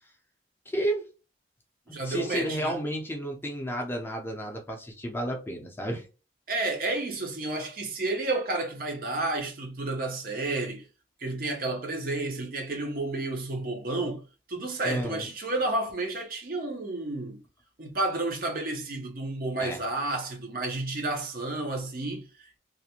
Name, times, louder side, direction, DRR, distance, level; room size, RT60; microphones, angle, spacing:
voice 1, 0.7-1.1 2.0-6.1 14.8-15.3 19.6-19.8, right 1 dB, 10° left, 0.5 m, -32 dB
voice 2, 1.9-2.8 6.5-10.9 11.2-14.2 14.5-17.4 17.8-22.6, right 2 dB, 50° right, 0.6 m, -31 dB
2.4 x 2.1 x 2.8 m
head